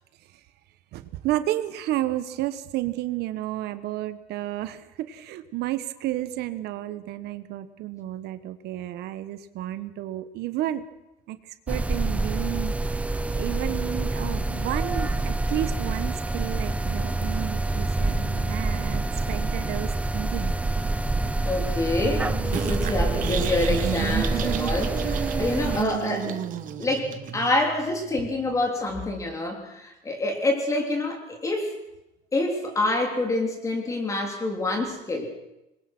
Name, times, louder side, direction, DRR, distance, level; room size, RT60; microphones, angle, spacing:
voice 1, 0.9-10.8 11.3-11.4 11.7-12.7 13.4-20.5 28.2-28.3, right 14 dB, 70° right, 11 dB, 1.4 m, -31 dB
sound 1, 11.7-25.8, right 2 dB, 10° right, 0.8 m, -27 dB
voice 2, 21.4-26.4 26.8-31.7 32.3-35.3, left 2 dB, 20° left, 3 dB, 3.6 m, -27 dB
sound 2, 22.0-28.7, right 3 dB, 25° right, 1.9 m, -39 dB
sound 3, 22.5-27.5, right 11 dB, 50° right, 1.4 m, -31 dB
26.0 x 22.0 x 6.2 m, 0.91 s
cardioid pair, 180°, 17 cm